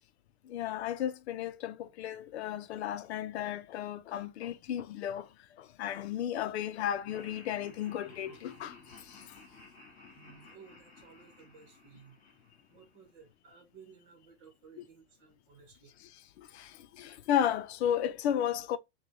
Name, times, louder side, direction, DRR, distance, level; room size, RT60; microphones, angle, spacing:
voice 1, 0.5-5.3 5.6-8.7 14.8-14.9 16.5-16.7 17.0-18.8, left 10 dB, 65° left, 0.6 m, -33 dB
Laughter, 7.0-13.2, left 3 dB, 20° left, 2.9 m, -55 dB
voice 2, 10.1-12.2 12.7-15.9, right 6 dB, 30° right, 1.1 m, -57 dB
6.0 x 2.3 x 3.2 m
supercardioid pair, 180°, 35 cm